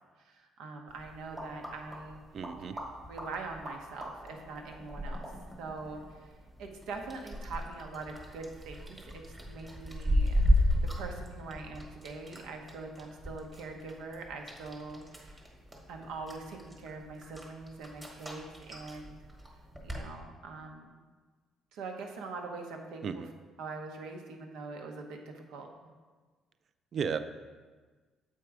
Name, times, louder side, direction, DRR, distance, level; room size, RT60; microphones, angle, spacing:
voice 1, 0.2-2.2 3.1-5.3 5.6-6.0 6.6-10.4 10.8-15.4 15.9-19.2 19.8-21.0 21.7-23.2 23.6-25.9, right 3 dB, 90° right, 3 dB, 1.0 m, -43 dB
sound 1, 0.9-20.1, equal, 10° right, 1.1 m, -35 dB
voice 2, 2.3-2.8 23.0-23.3 26.9-27.2, right 6 dB, 40° right, 11 dB, 0.4 m, -33 dB
7.5 x 4.6 x 4.8 m, 1.4 s
cardioid pair, 150°, 0 cm